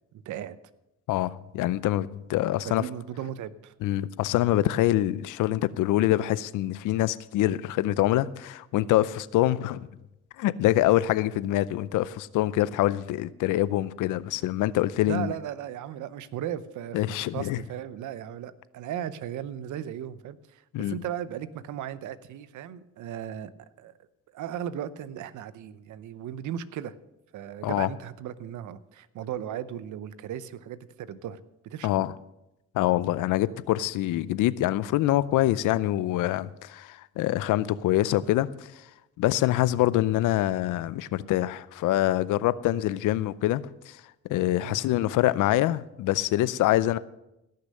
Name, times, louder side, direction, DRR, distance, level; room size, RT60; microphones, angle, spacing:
voice 1, 0.1-0.6 2.6-3.7 15.0-23.9 24.3-27.0 27.3-32.0 44.6-44.8, right 10 dB, 75° right, 16 dB, 0.8 m, -36 dB
voice 2, 1.1-2.8 3.8-9.9 10.4-15.3 16.9-17.6 20.7-21.0 27.6-27.9 31.8-32.1 32.7-38.7 39.2-44.0 44.3-47.0, left 14 dB, 85° left, 18 dB, 0.6 m, -25 dB
17.0 x 6.7 x 6.5 m, 0.91 s
cardioid pair, 90°, 30 cm